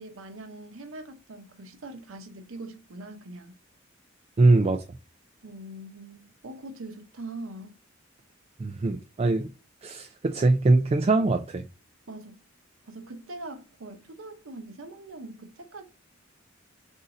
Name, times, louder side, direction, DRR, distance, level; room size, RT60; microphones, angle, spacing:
voice 1, 0.0-3.5 5.4-7.7 12.1-12.4 12.8-15.8, right 2 dB, 85° right, 0.9 m, -42 dB
voice 2, 4.4-4.8 8.6-9.5 9.8-11.6, right 2 dB, 30° right, 0.4 m, -22 dB
3.9 x 2.7 x 4.8 m
head